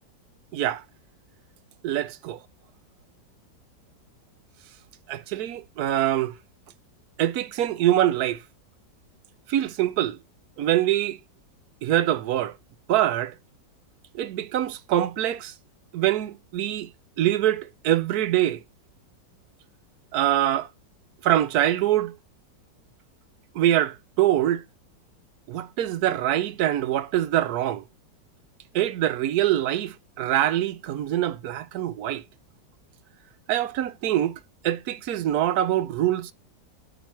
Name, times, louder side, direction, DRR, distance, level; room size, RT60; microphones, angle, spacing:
voice 1, 1.8-2.4 5.1-6.3 7.2-8.4 9.5-10.2 10.6-11.2 11.8-12.5 12.9-13.3 14.1-15.5 15.9-16.9 17.2-18.6 20.1-20.7 21.2-22.1 23.5-24.6 25.5-27.8 28.7-32.2 33.5-34.4 34.6-36.3, right 12 dB, 65° right, 1.1 m, -24 dB
9.0 x 4.9 x 4.5 m
omnidirectional pair, 1.9 m